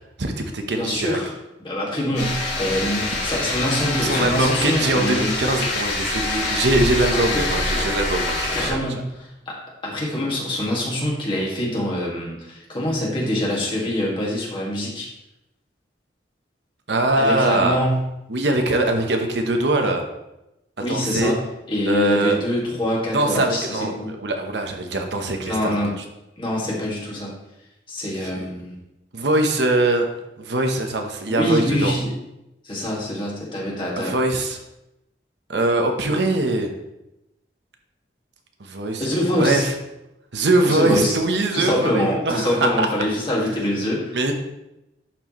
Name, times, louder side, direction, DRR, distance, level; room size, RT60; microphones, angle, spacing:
voice 1, 0.2-1.2 4.0-8.8 16.9-17.8 18.3-20.1 20.9-21.4 21.9-22.4 23.1-25.8 28.2-28.5 29.1-30.1 30.4-31.9 34.0-34.6 35.5-36.7 38.6-39.1 39.4-39.7 40.3-42.9 43.5-43.6 44.1-44.3, right 2 dB, 75° right, 4 dB, 0.9 m, -22 dB
voice 2, 0.8-1.3 1.6-5.3 7.1-7.5 8.5-9.1 9.5-9.6 9.8-15.1 17.2-18.0 20.8-21.4 21.7-24.1 25.4-25.9 26.4-27.3 27.9-28.7 31.3-32.1 32.6-34.2 39.0-39.6 40.6-41.1 41.5-44.1, left 1 dB, 30° left, -4 dB, 1.8 m, -24 dB
sound 1, 2.1-8.7, left 2 dB, 70° left, 2.5 m, -25 dB
11.0 x 4.5 x 3.0 m, 0.92 s
head